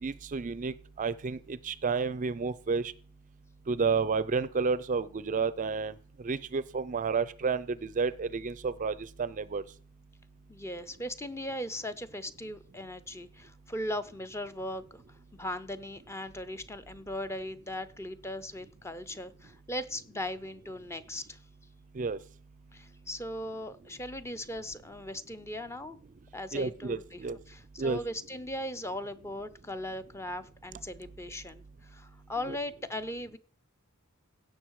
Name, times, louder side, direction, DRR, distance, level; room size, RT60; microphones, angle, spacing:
voice 1, 0.0-2.9 3.7-5.9 6.2-9.6 21.9-22.2 26.5-27.4 27.8-28.0, right 5 dB, 35° right, 17 dB, 0.4 m, -31 dB
voice 2, 10.5-15.0 15.3-21.4 22.7-26.0 26.3-33.4, left 1 dB, 15° left, 12 dB, 0.6 m, -38 dB
16.5 x 6.4 x 4.7 m, 0.44 s
head